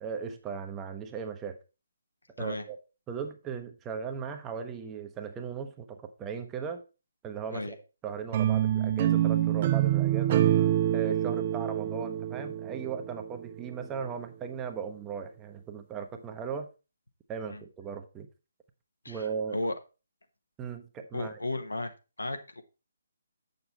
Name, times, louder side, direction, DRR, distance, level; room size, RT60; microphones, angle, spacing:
voice 1, 0.0-1.6 2.4-2.8 3.1-6.8 7.2-7.8 8.0-10.5 10.9-16.7 17.3-18.3 19.1-19.6 20.6-21.4, right 6 dB, 15° right, 6 dB, 0.8 m, -37 dB
sound 1, 8.3-13.4, right 12 dB, 35° right, 0.4 m, -26 dB
voice 2, 21.1-21.9 22.2-22.6, left 2 dB, 75° left, 7 dB, 1.2 m, -34 dB
7.8 x 6.7 x 4.2 m, 0.30 s
figure-of-eight pair, 140°, 0 cm